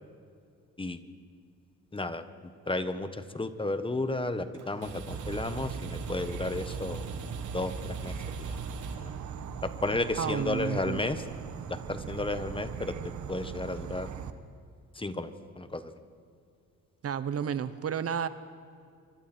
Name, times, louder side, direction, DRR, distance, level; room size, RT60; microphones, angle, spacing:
voice 1, 1.9-2.2 2.7-7.0 7.5-8.6 9.6-11.2 11.7-14.1 14.9-15.9, left 2 dB, 15° left, 10 dB, 1.4 m, -33 dB
sound 1, 4.5-9.7, right 3 dB, 85° right, 2.9 m, -42 dB
Insect / Frog, 5.1-14.3, right 8 dB, 70° right, 1.5 m, -40 dB
voice 2, 10.2-11.0 17.0-18.3, right 8 dB, 50° right, 13 dB, 1.1 m, -31 dB
27.5 x 24.5 x 4.5 m, 2.4 s
cardioid pair, 90°, 30 cm